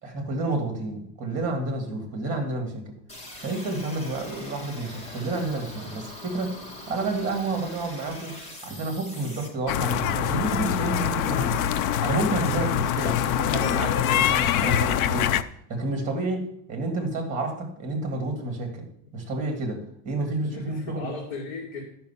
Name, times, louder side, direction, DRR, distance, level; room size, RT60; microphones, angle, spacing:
voice 1, 0.0-3.0 3.4-6.6 6.9-8.4 8.6-11.6 12.0-15.3 15.7-21.1, right 2 dB, 20° right, 4 dB, 2.1 m, -30 dB
sound 1, 3.1-9.5, left 1 dB, 15° left, 1.6 m, -42 dB
sound 2, 9.7-15.4, left 10 dB, 90° left, 0.7 m, -24 dB
voice 2, 12.2-12.6 20.4-21.8, left 2 dB, 60° left, -3 dB, 2.5 m, -37 dB
12.0 x 5.7 x 5.7 m, 0.69 s
cardioid pair, 175°, 41 cm